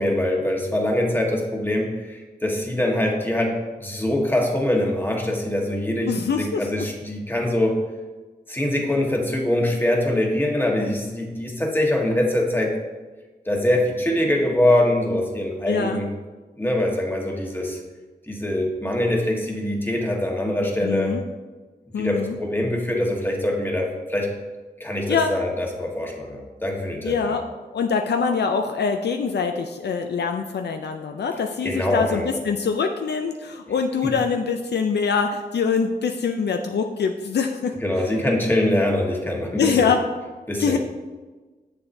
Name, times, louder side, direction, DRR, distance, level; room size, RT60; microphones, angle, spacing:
voice 1, 0.0-3.5 3.8-7.8 8.5-12.8 13.4-16.1 16.6-17.8 18.3-21.1 22.0-24.3 24.8-27.3 31.6-32.3 34.0-34.1 37.8-39.9 40.5-40.8, left 1 dB, 10° left, 0 dB, 1.3 m, -23 dB
voice 2, 6.1-6.7 15.7-16.0 20.8-21.2 21.9-22.4 25.1-25.3 27.0-27.4 27.7-37.7 39.6-40.0 40.6-40.8, left 5 dB, 80° left, 5 dB, 0.4 m, -24 dB
6.9 x 6.8 x 2.6 m, 1.3 s
wide cardioid pair, 65°, 17 cm